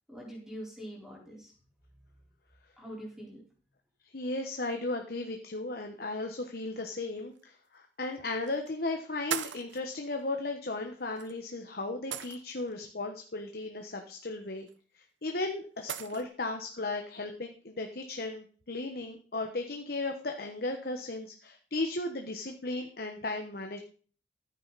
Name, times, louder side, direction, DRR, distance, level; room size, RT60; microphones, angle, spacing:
voice 1, 0.1-1.5 2.8-3.4, equal, 5° right, -3 dB, 4.3 m, -44 dB
voice 2, 4.1-14.7 14.9-23.8, left 2 dB, 55° left, 4 dB, 1.2 m, -36 dB
sound 1, 7.3-7.4 8.5-8.7 9.3-9.8 11.2-11.3 12.1-12.7 14.7-14.8 15.9-16.2, right 9 dB, 80° right, 0.8 m, -37 dB
14.5 x 9.5 x 4.1 m, 0.43 s
head